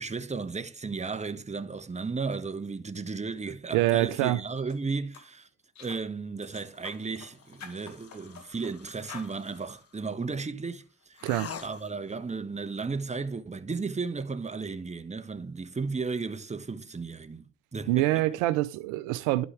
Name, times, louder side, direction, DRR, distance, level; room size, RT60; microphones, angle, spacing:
voice 1, 0.0-5.5 5.8-11.2 11.6-17.4 17.7-18.2, right 4 dB, 25° right, 1.1 m, -34 dB
voice 2, 3.7-4.4 11.2-11.5 17.9-19.4, right 16 dB, 85° right, 0.5 m, -25 dB
sound 1, 4.6-4.8 5.1-5.3 5.8-6.0 6.4-7.3 7.6-8.7 9.1-9.3, left 5 dB, 65° left, 1.9 m, -46 dB
sound 2, 6.6-10.1 11.2-12.2, left 7 dB, 50° left, 1.3 m, -47 dB
11.5 x 5.3 x 3.3 m
hypercardioid pair, 45°, 30 cm